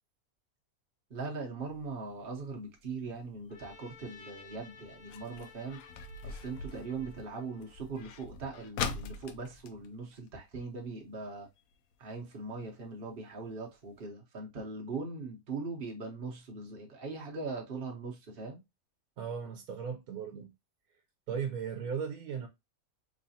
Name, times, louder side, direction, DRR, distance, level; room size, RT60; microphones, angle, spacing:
voice 1, 1.1-5.8 6.2-11.5 12.0-18.6, right 4 dB, 45° right, 1.0 m, -40 dB
sound 1, 1.6-10.9 11.2-11.3 11.6-11.9 12.5-12.6 13.1-13.2 13.5-13.6 13.9-14.0, left 5 dB, 80° left, 1.0 m, -43 dB
Trumpet, 3.5-7.9, left 5 dB, 45° left, 0.6 m, -55 dB
voice 2, 19.2-20.5 21.3-22.5, right 7 dB, 85° right, 1.1 m, -37 dB
3.9 x 3.2 x 2.7 m
omnidirectional pair, 1.5 m